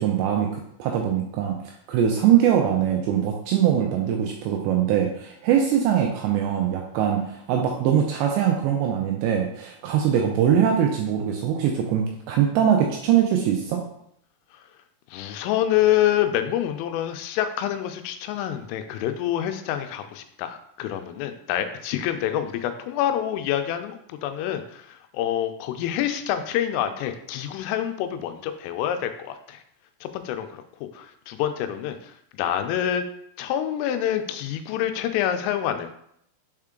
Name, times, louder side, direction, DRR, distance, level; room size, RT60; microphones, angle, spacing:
voice 1, 0.0-1.6 1.9-13.8, right 9 dB, 80° right, 1 dB, 2.6 m, -22 dB
voice 2, 15.1-29.6 30.0-30.6 30.9-33.1 33.4-36.0, left 11 dB, 90° left, 8 dB, 3.2 m, -27 dB
6.7 x 4.5 x 3.7 m, 0.72 s
omnidirectional pair, 5.7 m